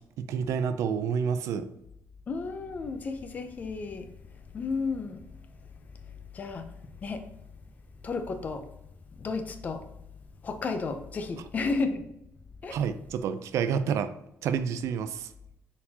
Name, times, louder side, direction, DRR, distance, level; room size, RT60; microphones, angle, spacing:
voice 1, 0.0-1.7 12.7-14.1 14.4-15.3, right 7 dB, 70° right, 11 dB, 0.4 m, -29 dB
voice 2, 2.3-4.1 4.5-5.3 6.3-6.7 7.0-7.2 8.0-8.6 9.2-9.8 10.4-12.1 12.6-12.8, left 4 dB, 30° left, 7 dB, 0.5 m, -32 dB
4.3 x 4.1 x 2.8 m, 0.82 s
cardioid pair, 175°, 5 cm